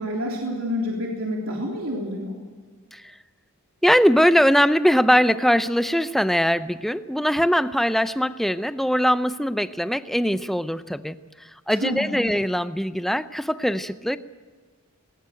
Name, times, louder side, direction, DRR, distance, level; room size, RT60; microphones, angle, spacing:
voice 1, 0.0-2.4 11.7-12.1, equal, 70° right, -2 dB, 3.5 m, -28 dB
voice 2, 3.8-11.2 11.7-14.2, equal, ahead, 12 dB, 0.6 m, -21 dB
20.5 x 18.5 x 7.9 m, 1.5 s
head